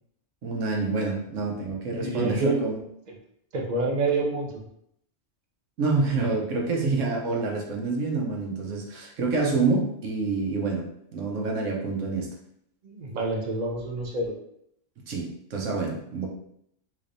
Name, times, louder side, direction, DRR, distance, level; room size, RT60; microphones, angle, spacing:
voice 1, 0.4-2.8 5.8-10.9 11.1-12.3 15.1-16.3, right 3 dB, 80° right, 0 dB, 1.1 m, -27 dB
voice 2, 1.9-2.6 3.1-3.2 3.5-4.7 12.8-14.3, right 3 dB, 45° right, 0 dB, 0.6 m, -28 dB
3.3 x 3.3 x 2.6 m, 0.72 s
omnidirectional pair, 1.3 m